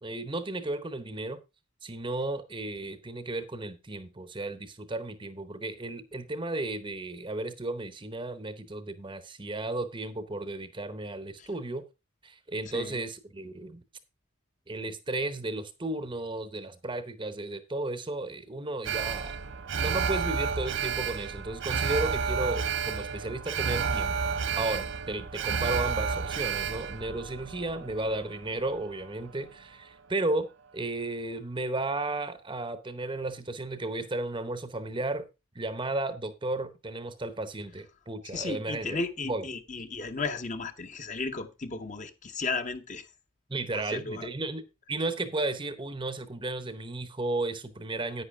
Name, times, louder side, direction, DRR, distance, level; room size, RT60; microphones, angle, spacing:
voice 1, 0.0-1.4 1.8-11.9 12.2-13.8 14.7-19.4 19.7-30.5 30.7-35.3 35.5-39.0 39.3-39.5 43.5-48.2, right 2 dB, 25° right, 0.8 m, -34 dB
voice 2, 12.7-13.0 38.2-43.1 43.7-44.3, left 3 dB, 35° left, 0.9 m, -35 dB
Alarm, 18.8-29.1 29.5-29.6, right 6 dB, 55° right, 0.6 m, -31 dB
10.0 x 9.3 x 3.6 m
head